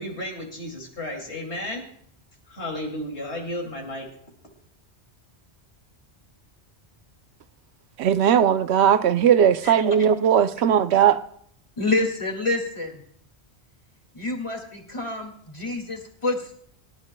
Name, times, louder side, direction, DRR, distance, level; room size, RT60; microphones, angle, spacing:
voice 1, 0.0-1.8 2.5-4.1, left 1 dB, 85° left, 3.0 m, -33 dB
voice 2, 8.0-11.2, right 8 dB, 80° right, 0.9 m, -18 dB
voice 3, 11.8-12.9 14.1-16.5, left 2 dB, 30° left, 2.2 m, -27 dB
25.5 x 12.0 x 2.2 m
omnidirectional pair, 1.1 m